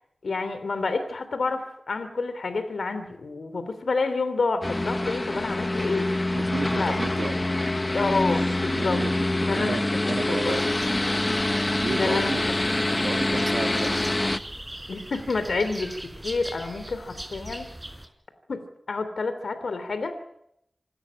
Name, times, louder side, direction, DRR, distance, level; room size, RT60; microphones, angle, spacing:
voice 1, 0.2-6.1 6.7-7.0 7.9-9.0 9.3-10.7 11.9-12.3 12.6-13.0 14.9-17.7 18.5-18.6 18.9-20.2, left 3 dB, 80° left, 10 dB, 3.0 m, -29 dB
sound 1, 4.6-14.4, left 2 dB, 30° left, 1.2 m, -25 dB
voice 2, 6.3-7.3 8.7-10.6 10.9-11.1 11.8-12.4 12.9-14.2, right 4 dB, 80° right, 6 dB, 2.7 m, -33 dB
sound 2, 10.4-18.1, right 1 dB, 20° right, 5.1 m, -41 dB
27.0 x 13.5 x 9.9 m, 0.75 s
cardioid pair, 50°, 0 cm